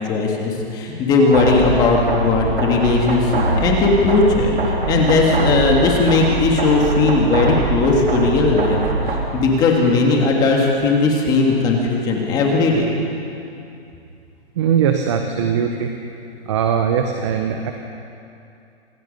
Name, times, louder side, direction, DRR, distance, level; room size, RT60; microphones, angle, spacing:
voice 1, 0.1-4.5 4.9-8.8 9.1-12.8, left 3 dB, 10° left, 0 dB, 1.9 m, -17 dB
sound 1, 1.3-9.3, right 2 dB, 65° right, 3.9 m, -22 dB
voice 2, 14.6-15.9 16.5-17.7, right 8 dB, 25° right, 5 dB, 1.0 m, -20 dB
26.5 x 18.5 x 5.4 m, 2.6 s
hypercardioid pair, 165°, 33 cm